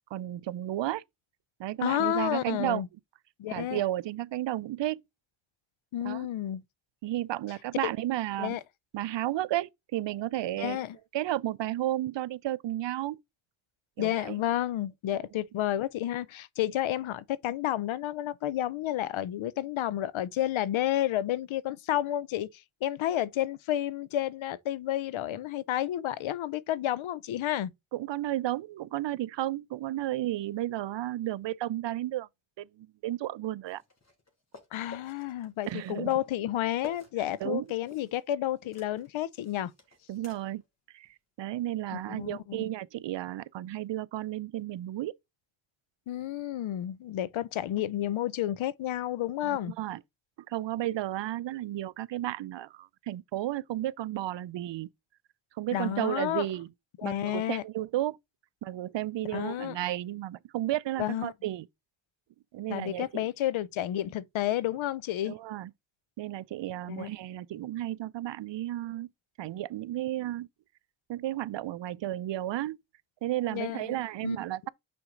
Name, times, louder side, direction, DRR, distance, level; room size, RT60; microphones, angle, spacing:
voice 1, 0.1-1.0 1.6-2.8 3.5-5.0 6.0-6.3 7.0-8.6 8.9-10.8 11.1-13.2 14.0-14.4 27.9-32.3 32.6-33.8 35.7-36.1 37.4-37.7 40.1-40.6 40.9-41.1 41.4-45.1 49.4-50.0 50.5-54.9 55.6-56.7 57.0-58.2 58.6-61.7 62.5-63.2 65.2-65.7 66.2-69.1 69.4-70.5 71.1-72.8 73.2-74.7, right 14 dB, 65° right, 0.5 m, -33 dB
voice 2, 1.8-2.9 3.4-3.8 5.9-6.6 8.4-8.6 10.6-11.0 14.0-27.7 34.7-39.7 41.9-42.7 46.1-49.7 55.7-56.5 57.0-57.6 59.3-59.8 61.0-61.3 62.7-65.4 66.9-67.1 73.5-74.0 74.2-74.4, left 12 dB, 80° left, 0.6 m, -31 dB
sound 1, 33.6-38.3 38.5-40.7 41.0-41.1 43.7-43.8, left 3 dB, 35° left, 2.4 m, -51 dB
5.9 x 4.3 x 3.8 m
cardioid pair, 60°, 47 cm